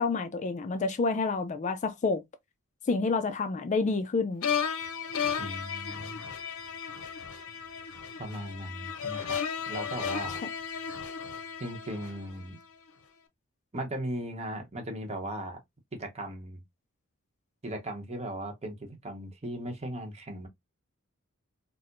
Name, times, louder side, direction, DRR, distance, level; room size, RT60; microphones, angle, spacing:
voice 1, 0.0-2.2 2.9-4.5 10.4-10.5, left 4 dB, 35° left, 0.4 m, -28 dB
sound 1, 4.4-12.6, left 7 dB, 85° left, 0.7 m, -34 dB
voice 2, 5.4-6.3 8.2-9.3 9.7-10.4 11.6-12.6 13.7-15.6 15.9-16.6 17.6-20.5, right 1 dB, 30° right, 0.9 m, -37 dB
4.4 x 2.1 x 2.5 m
head